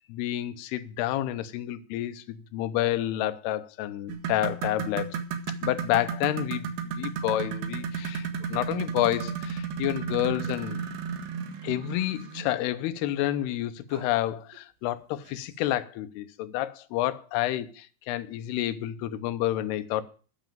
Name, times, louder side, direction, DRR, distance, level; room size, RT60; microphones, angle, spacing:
voice 1, 0.0-5.2 5.6-10.8 11.6-20.0, left 14 dB, 80° left, 12 dB, 2.8 m, -29 dB
sound 1, 4.1-12.5 13.9-14.1 14.5-14.6 15.3-15.4, right 6 dB, 70° right, 3.0 m, -34 dB
9.5 x 7.2 x 9.1 m, 0.39 s
omnidirectional pair, 4.9 m